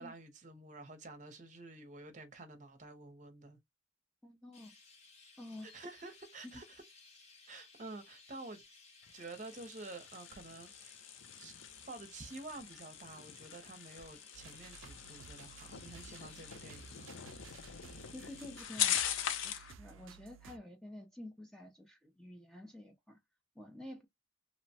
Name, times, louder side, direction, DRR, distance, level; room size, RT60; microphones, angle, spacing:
voice 1, 0.0-3.6 5.6-6.8 7.5-8.7 9.1-11.0 11.4-11.5 11.9-17.2 20.5-20.6, right 2 dB, 40° right, 0.7 m, -50 dB
voice 2, 4.2-4.7 5.4-5.7 6.4-6.6 18.1-19.0 19.4-23.2 23.6-24.1, left 1 dB, 5° left, 0.5 m, -50 dB
Chirp tweet, 4.5-18.6, left 4 dB, 35° left, 0.9 m, -60 dB
sound 1, 9.0-19.7, left 9 dB, 85° left, 0.5 m, -41 dB
sound 2, 14.3-20.6, right 6 dB, 90° right, 0.4 m, -55 dB
2.9 x 2.0 x 2.8 m
head